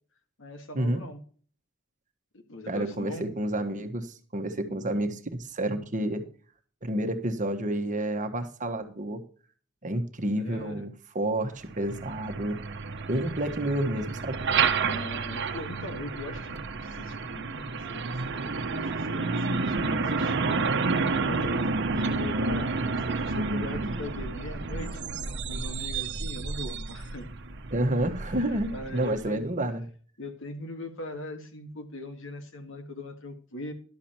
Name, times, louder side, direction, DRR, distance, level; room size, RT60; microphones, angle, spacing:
voice 1, 0.4-1.2 2.3-3.3 10.4-10.9 14.8-20.6 20.9-25.1 25.5-27.3 28.4-29.4 30.2-33.7, left 1 dB, 65° left, 6 dB, 1.8 m, -40 dB
voice 2, 2.7-6.2 6.8-9.2 9.8-12.6 13.1-14.4 27.7-29.8, right 1 dB, 40° right, 7 dB, 1.3 m, -29 dB
Truck, 11.6-29.3, right 4 dB, 60° right, 1.1 m, -30 dB
11.5 x 7.1 x 4.4 m, 0.43 s
head